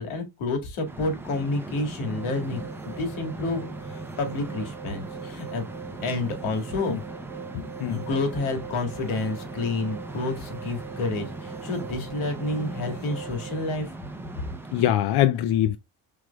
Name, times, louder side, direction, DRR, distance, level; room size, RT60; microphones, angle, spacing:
voice 1, 0.0-5.6 6.0-7.0 7.9-13.9, left 2 dB, 80° left, 2.1 m, -29 dB
sound 1, 0.9-14.9, right 2 dB, 5° right, 0.5 m, -39 dB
sound 2, 2.0-13.7, right 8 dB, 45° right, 0.8 m, -43 dB
voice 2, 7.5-8.0 14.7-15.8, left 12 dB, 55° left, 0.5 m, -23 dB
6.4 x 3.5 x 2.2 m
cardioid pair, 145°, 49 cm